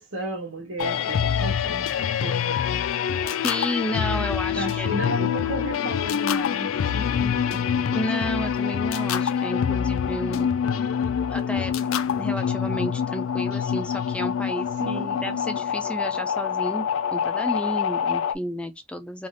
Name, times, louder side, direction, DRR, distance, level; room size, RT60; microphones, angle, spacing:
voice 1, 0.0-2.9 4.5-7.8 14.8-15.4, equal, 80° right, 1.0 m, -33 dB
sound 1, 0.8-18.4, left 8 dB, 85° left, 0.3 m, -25 dB
voice 2, 3.4-5.3 7.9-10.5 11.3-11.8 12.2-16.9 17.1-19.3, equal, 5° left, 0.3 m, -31 dB
3.2 x 2.5 x 2.6 m
head